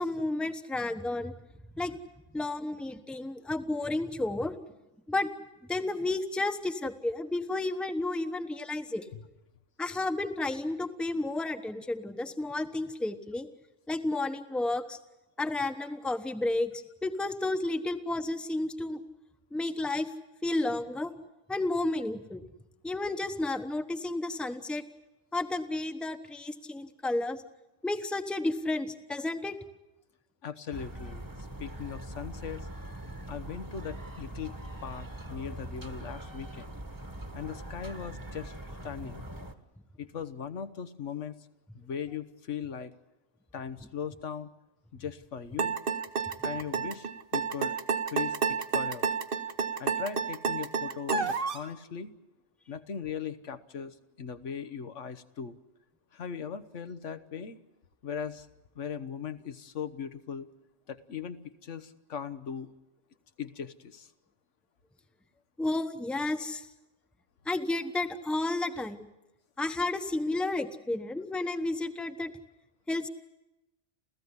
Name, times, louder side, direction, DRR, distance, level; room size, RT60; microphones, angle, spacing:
voice 1, 0.0-1.3 1.8-2.0 2.3-4.5 5.1-5.3 5.7-9.0 9.8-13.5 13.9-15.0 15.4-16.7 17.0-19.0 19.5-20.1 20.4-21.1 21.5-22.4 22.8-24.8 25.3-27.4 27.8-29.6 65.6-66.7 67.5-69.0 69.6-72.3 72.9-73.1, left 2 dB, ahead, 8 dB, 1.0 m, -31 dB
voice 2, 30.4-31.3 31.6-32.7 33.3-36.7 37.3-38.6 38.8-39.2 40.0-41.4 41.7-42.9 43.5-44.5 44.9-45.8 46.4-47.7 48.1-49.1 49.8-52.1 52.7-55.6 56.1-57.6 58.0-58.5 58.7-60.5 60.9-62.7 63.4-64.1, left 7 dB, 75° left, 10 dB, 1.4 m, -39 dB
sound 1, 30.7-39.5, right 1 dB, 15° right, 1.4 m, -42 dB
sound 2, 45.6-51.7, right 5 dB, 50° right, 1.3 m, -30 dB
30.0 x 14.5 x 9.7 m, 0.99 s
omnidirectional pair, 1.2 m